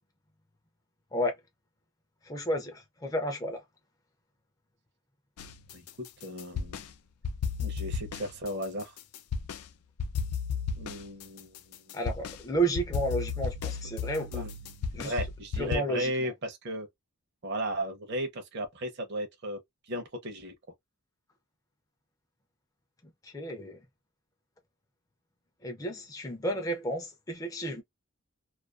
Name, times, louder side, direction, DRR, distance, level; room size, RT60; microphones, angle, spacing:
voice 1, 2.2-3.6 11.9-14.4 14.9-15.1 15.6-16.3 23.2-23.8 25.6-27.8, right 1 dB, 15° left, 0.4 m, -32 dB
sound 1, 5.4-6.9 7.2-9.7 10.0-15.8, left 6 dB, 85° left, 0.4 m, -34 dB
voice 2, 5.7-6.8 7.6-9.0 10.8-11.5 11.9-12.0 14.3-14.5 15.0-16.9 17.4-19.6 19.9-20.5, equal, 50° right, 0.6 m, -35 dB
2.4 x 2.2 x 2.3 m
head